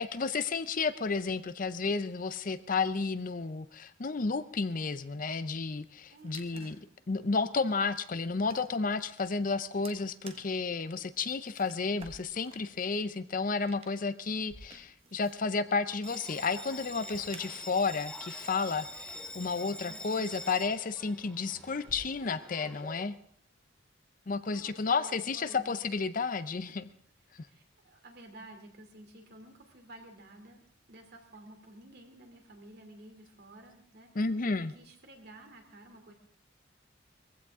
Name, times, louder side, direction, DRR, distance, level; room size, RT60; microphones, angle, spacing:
voice 1, 0.0-6.8 7.1-23.2 24.3-26.9 27.3-27.5 34.2-34.7, left 4 dB, 45° left, 13 dB, 0.6 m, -32 dB
sound 1, 6.0-18.0, right 4 dB, 30° right, 1.4 m, -57 dB
voice 2, 6.1-6.8 19.8-20.3 24.5-25.7 26.7-26.8 27.4-30.6 30.9-36.1, right 1 dB, 55° right, 4 dB, 2.8 m, -52 dB
sound 2, 10.2-23.8, equal, 70° right, 4.9 m, -61 dB
Bell, 16.0-23.0, left 1 dB, 5° left, 0.7 m, -45 dB
21.0 x 15.5 x 3.6 m, 0.62 s
head